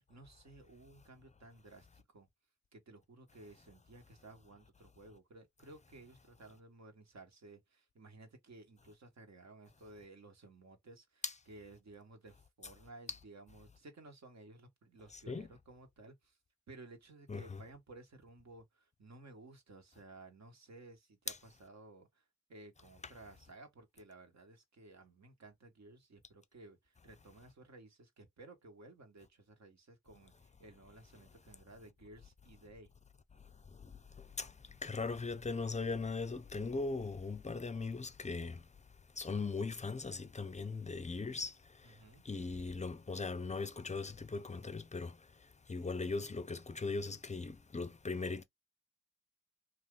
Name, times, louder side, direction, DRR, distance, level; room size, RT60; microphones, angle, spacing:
voice 1, 0.0-2.3 2.7-16.4 16.7-32.9 41.8-42.2, right 2 dB, 50° right, 1.3 m, -56 dB
voice 2, 15.1-15.5 17.3-17.6 21.3-21.4 34.4-34.5 34.8-38.6 39.2-41.5 42.3-45.2 45.7-48.4, left 4 dB, 20° left, 0.6 m, -39 dB
2.7 x 2.5 x 3.6 m
supercardioid pair, 40°, 34 cm